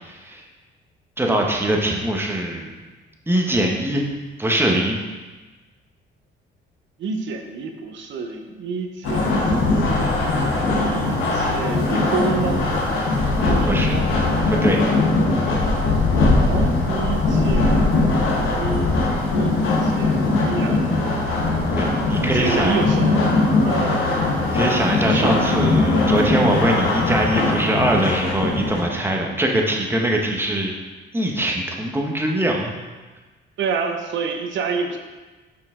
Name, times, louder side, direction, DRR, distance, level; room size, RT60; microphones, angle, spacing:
voice 1, 0.1-0.4 1.2-2.7 3.3-4.0 4.4-5.0 13.7-14.0 14.5-14.8 21.8-22.8 24.4-30.8 31.1-32.7, right 1 dB, 10° right, 0 dB, 1.0 m, -22 dB
voice 2, 7.0-9.9 10.2-12.7 13.5-14.2 16.0-19.0 19.3-19.5 19.8-20.9 22.2-23.3 23.6-24.0 25.0-25.3 33.6-35.0, right 5 dB, 70° right, 4 dB, 0.8 m, -28 dB
sound 1, 9.0-28.8, left 2 dB, 90° left, 1.0 m, -20 dB
5.7 x 4.7 x 3.7 m, 1.2 s
cardioid pair, 90°, 20 cm